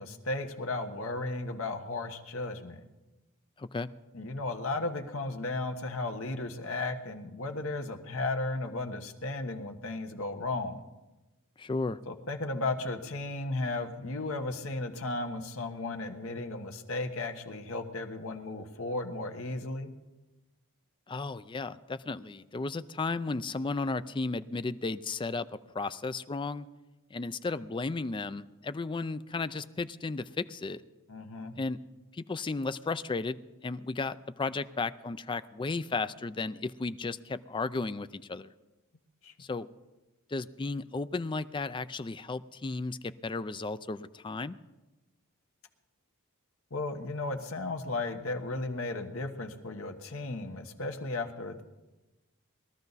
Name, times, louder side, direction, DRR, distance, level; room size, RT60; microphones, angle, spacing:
voice 1, 0.0-2.8 4.1-10.8 12.1-19.9 31.1-31.5 39.2-39.3 46.7-51.6, left 2 dB, 65° left, 6 dB, 1.3 m, -35 dB
voice 2, 3.6-3.9 11.6-12.0 21.1-25.5 25.7-26.7 27.1-30.8 31.6-31.8 32.1-33.4 33.6-38.5 39.4-39.7 40.3-44.6, left 3 dB, 20° left, 13 dB, 0.4 m, -34 dB
21.0 x 13.0 x 4.1 m, 1.1 s
head